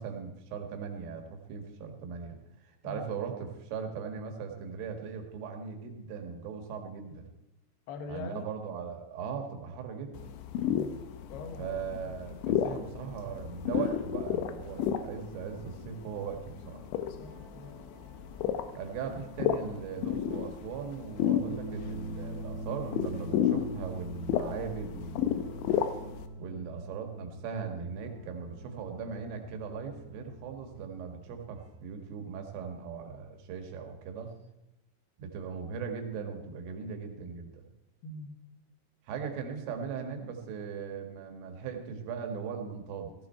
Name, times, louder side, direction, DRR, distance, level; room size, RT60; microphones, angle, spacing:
voice 1, 0.0-7.3 8.1-10.3 11.6-16.9 18.8-25.7 26.4-34.3 35.2-37.7 39.1-43.1, right 6 dB, 75° right, 4 dB, 4.2 m, -39 dB
voice 2, 7.9-8.5 10.6-11.0 11.3-12.1 17.1-17.8 38.0-38.4, left 3 dB, 65° left, 5 dB, 3.1 m, -43 dB
sound 1, 10.1-26.3, left 9 dB, 80° left, 2.9 m, -33 dB
sound 2, 16.8-31.7, right 1 dB, 15° right, 4.6 m, -45 dB
16.0 x 15.0 x 4.5 m, 0.94 s
omnidirectional pair, 5.9 m